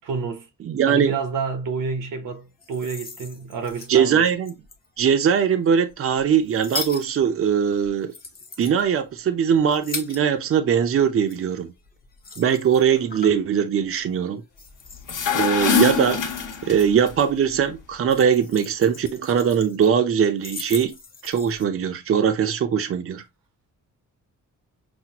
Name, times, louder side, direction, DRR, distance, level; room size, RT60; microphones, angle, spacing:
voice 1, 0.0-0.5 0.9-4.3, right 5 dB, 85° right, 1.1 m, -29 dB
voice 2, 0.6-1.2 3.9-4.5 5.0-8.1 8.6-11.7 12.4-14.4 15.3-16.2 16.6-21.0 21.2-23.2, right 7 dB, 45° right, 0.6 m, -21 dB
sound 1, 2.4-5.0 5.7-10.7 10.9-13.5 13.8-14.1 14.5-15.4 16.0-17.3 17.5-19.9 20.2-21.6, left 4 dB, 30° left, 0.8 m, -39 dB
sound 2, 15.0-17.1, left 6 dB, 75° left, 1.0 m, -23 dB
6.0 x 2.2 x 2.8 m
wide cardioid pair, 140°, 32 cm